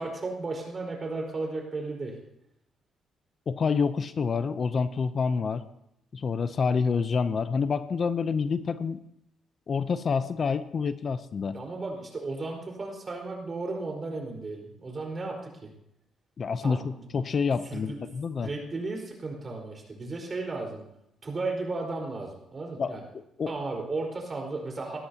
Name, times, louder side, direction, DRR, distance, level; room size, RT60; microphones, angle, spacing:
voice 1, 0.0-2.1 11.5-15.7 16.6-17.1 17.7-18.0 18.4-20.8 21.2-23.0 23.5-25.0, right 3 dB, 35° right, 0 dB, 4.5 m, -34 dB
voice 2, 3.5-5.6 6.1-9.0 9.7-11.6 16.4-18.5 22.8-23.6, left 5 dB, 45° left, 13 dB, 0.6 m, -28 dB
17.5 x 13.0 x 2.9 m, 0.78 s
cardioid pair, 90°, 0 cm